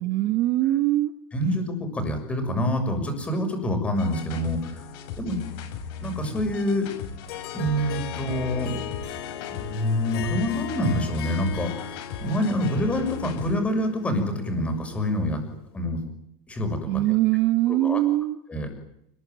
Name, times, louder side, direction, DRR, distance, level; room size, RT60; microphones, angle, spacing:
voice 1, 0.0-1.1 16.9-18.4, right 16 dB, 40° right, 9 dB, 1.2 m, -22 dB
voice 2, 1.3-4.8 5.2-5.4 6.0-6.9 7.5-8.8 9.5-15.4 15.7-16.0 16.5-17.1 17.7-18.0 18.5-18.7, equal, 10° left, 5 dB, 6.5 m, -26 dB
sound 1, 3.9-13.6, left 6 dB, 50° left, 7.8 m, -38 dB
Harp, 7.3-15.7, left 10 dB, 65° left, 3.9 m, -38 dB
28.5 x 21.0 x 9.4 m, 0.78 s
supercardioid pair, 175°, 14 cm